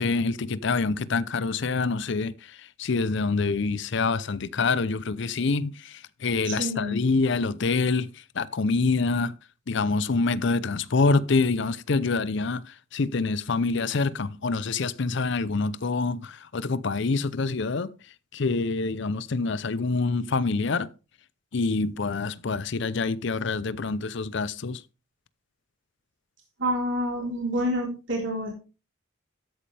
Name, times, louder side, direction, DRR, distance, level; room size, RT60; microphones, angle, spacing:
voice 1, 0.0-9.4 9.7-17.9 18.3-20.9 21.5-24.8, left 3 dB, 60° left, 0.6 m, -26 dB
voice 2, 6.5-7.0 26.6-28.5, equal, 65° right, 3.9 m, -28 dB
13.0 x 8.5 x 3.4 m
head